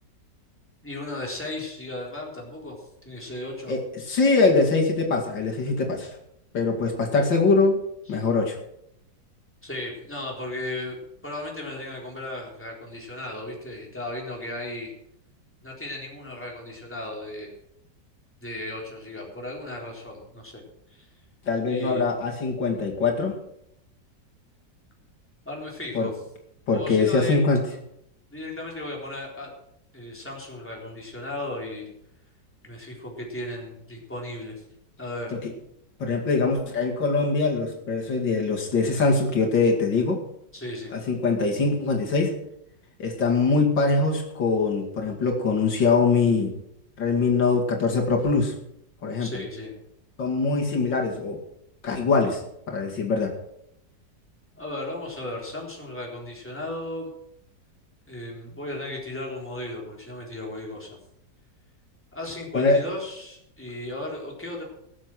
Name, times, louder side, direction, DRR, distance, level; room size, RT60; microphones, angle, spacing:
voice 1, 0.8-3.7 8.1-8.2 9.6-14.9 15.6-17.5 18.4-20.6 20.9-21.1 21.7-22.2 25.5-26.1 26.7-27.4 28.3-29.5 29.9-31.9 32.6-34.6 35.0-35.4 40.5-40.9 49.2-49.7 54.6-57.1 58.1-60.9 62.1-64.6, left 1 dB, 5° left, -2 dB, 3.7 m, -35 dB
voice 2, 3.7-6.1 6.5-7.8 8.1-8.6 21.5-23.4 25.9-26.1 26.7-27.6 36.0-40.2 40.9-42.4 43.0-46.5 47.0-48.5 49.0-49.3 50.2-51.4 51.8-52.4 52.7-53.3 62.5-62.8, left 4 dB, 75° left, 0 dB, 2.9 m, -23 dB
18.5 x 7.6 x 6.2 m, 0.76 s
omnidirectional pair, 2.0 m